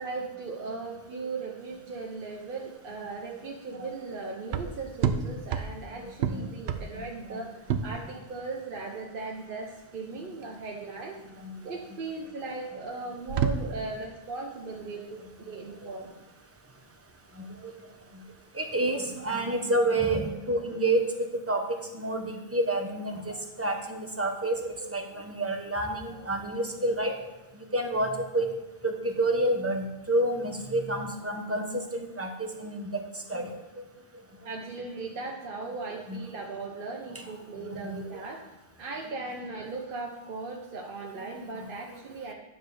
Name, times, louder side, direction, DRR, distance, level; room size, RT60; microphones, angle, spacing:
voice 1, 0.0-11.2 11.6-16.2 34.4-42.3, right 3 dB, 60° right, 0 dB, 0.9 m, -38 dB
sound 1, 1.6-19.8, right 7 dB, 90° right, 0.9 m, -35 dB
voice 2, 6.0-6.5 7.3-7.4 11.4-11.6 17.6-17.7 18.5-21.6 21.9-27.1 27.7-28.5 28.8-31.7 31.9-32.9 33.3-33.5 36.1-36.2 37.1-37.2 37.7-38.1, right 1 dB, 15° right, 3 dB, 0.8 m, -29 dB
9.9 x 3.4 x 6.7 m, 1.0 s
omnidirectional pair, 1.0 m